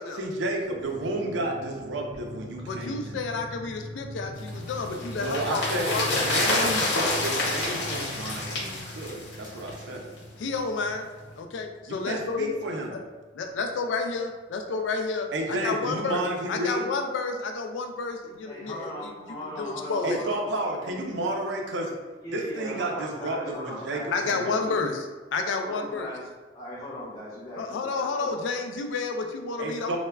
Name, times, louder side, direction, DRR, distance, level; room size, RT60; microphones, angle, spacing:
voice 1, 0.1-3.2 5.2-10.1 11.9-13.0 15.3-16.9 20.0-21.9 22.3-24.8 29.6-30.0, right 1 dB, 70° right, 2 dB, 0.4 m, -31 dB
sound 1, 0.6-13.0 13.3-13.4 13.6-13.9, left 1 dB, 25° right, 0.6 m, -42 dB
voice 2, 2.7-6.3 10.4-11.1 11.4-12.6 12.9-13.0 13.4-16.2 16.5-19.1 19.4-20.2 24.1-25.1 25.3-26.1 27.6-30.0, left 4 dB, 80° left, 5 dB, 0.3 m, -30 dB
sound 2, 4.5-9.9 10.2-10.3, left 2 dB, 65° left, 0.8 m, -28 dB
voice 3, 18.4-20.4 20.8-21.3 22.2-25.0 25.6-26.2 26.5-28.3, left 1 dB, 30° left, -9 dB, 0.6 m, -39 dB
2.2 x 2.0 x 3.3 m, 1.3 s
head